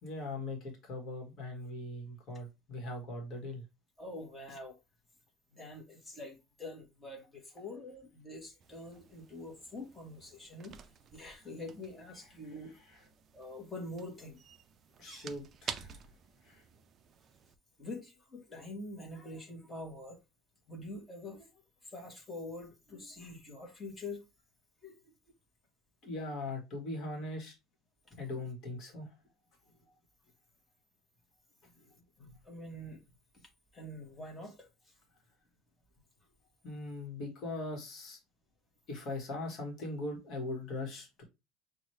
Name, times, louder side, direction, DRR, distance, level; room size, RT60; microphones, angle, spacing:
voice 1, 0.0-3.6 15.0-16.0 16.5-16.6 26.0-27.5 28.2-29.1 36.6-38.2 38.9-41.2, left 2 dB, 40° left, 1.5 m, -40 dB
voice 2, 4.0-4.8 5.5-10.8 11.1-12.7 13.3-14.4 17.8-20.2 20.7-24.2 24.8-25.1 28.1-28.2 31.7-33.0 33.7-34.9, left 2 dB, 15° left, 1.3 m, -45 dB
sound 1, 8.6-17.6, right 7 dB, 30° right, 0.4 m, -50 dB
6.0 x 2.4 x 3.2 m
cardioid pair, 160°, 0 cm